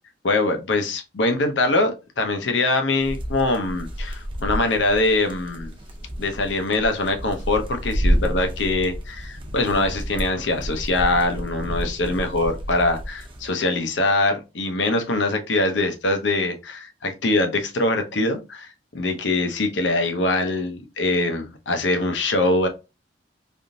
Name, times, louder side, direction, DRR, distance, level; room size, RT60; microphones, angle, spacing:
voice 1, 0.2-5.7 6.2-22.7, left 2 dB, 85° left, 6 dB, 0.7 m, -23 dB
sound 1, 3.0-13.5, equal, 30° right, 0.6 m, -29 dB
3.5 x 2.5 x 2.6 m, 0.28 s
head